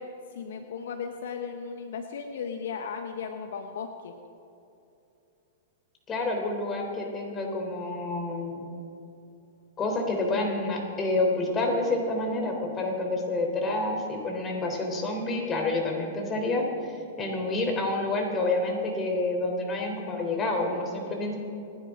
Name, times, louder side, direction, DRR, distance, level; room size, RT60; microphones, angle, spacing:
voice 1, 0.0-4.1, left 6 dB, 70° left, 6 dB, 1.0 m, -36 dB
voice 2, 6.1-8.6 9.8-16.7 17.2-21.4, left 2 dB, 25° left, 1 dB, 3.5 m, -28 dB
29.0 x 10.5 x 3.7 m, 2.8 s
hypercardioid pair, 110°, 0 cm